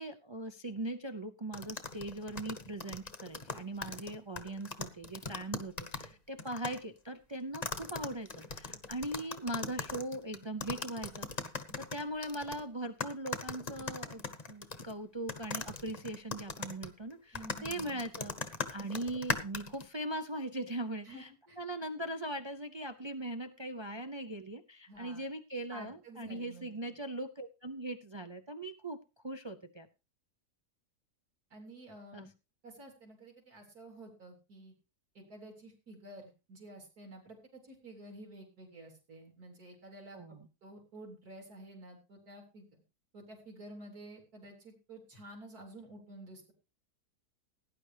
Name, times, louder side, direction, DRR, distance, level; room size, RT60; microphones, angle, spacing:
voice 1, 0.0-14.2 14.5-21.3 21.6-29.9 32.1-32.3 40.1-40.5, right 1 dB, 45° right, 7 dB, 0.3 m, -40 dB
sound 1, 1.5-6.1 6.4-6.8 7.5-12.6 13.0-14.9 15.3-19.8, left 4 dB, 30° left, 1.0 m, -39 dB
voice 2, 17.3-18.0 21.0-21.6 24.9-25.3 25.7-26.9 31.5-32.3 32.6-34.7 35.1-42.7 43.1-46.5, right 1 dB, 75° right, 1 dB, 4.1 m, -51 dB
17.5 x 10.0 x 3.4 m, 0.31 s
omnidirectional pair, 1.6 m